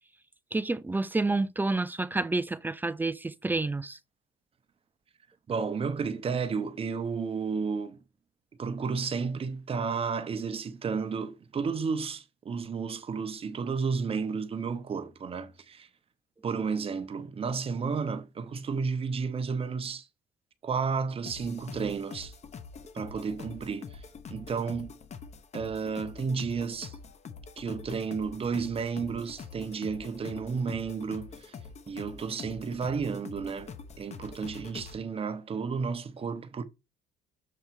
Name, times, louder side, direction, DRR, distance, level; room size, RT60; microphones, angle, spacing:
voice 1, 0.5-4.0, right 2 dB, 10° right, 0.4 m, -29 dB
voice 2, 5.5-8.0 8.6-15.9 16.4-20.1 20.6-22.3 22.9-24.0 24.3-24.9 25.5-27.0 27.6-31.6 31.9-36.6, right 5 dB, 35° right, 0.8 m, -32 dB
sound 1, 21.3-35.0, left 5 dB, 40° left, 0.9 m, -45 dB
7.0 x 3.2 x 4.5 m
cardioid pair, 110°, 17 cm